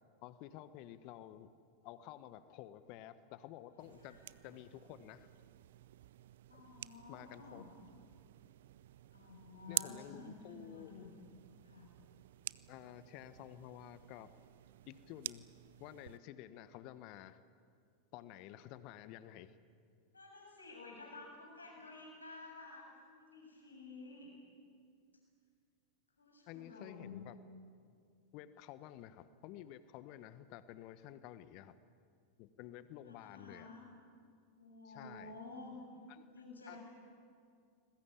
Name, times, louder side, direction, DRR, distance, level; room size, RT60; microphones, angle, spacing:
voice 1, 0.2-1.5 1.8-4.2 4.4-5.3 6.5-6.6 7.1-7.6 9.7-11.1 12.7-14.3 14.9-15.5 15.8-17.4 18.1-19.5 26.5-27.4 28.3-31.7 32.4-33.7 34.8-35.4 36.1-36.2 36.7-36.8, left 13 dB, 45° left, 13 dB, 1.2 m, -51 dB
sound 1, 3.8-16.2, right 13 dB, 60° right, 0.5 m, -49 dB
voice 2, 6.5-7.7 9.1-11.2 11.6-11.9 20.1-24.3 26.2-27.3 33.0-33.8 34.6-35.8 36.3-36.8, left 3 dB, 80° left, 0 dB, 7.2 m, -52 dB
29.0 x 21.0 x 8.4 m, 2.2 s
figure-of-eight pair, 90°, 0 cm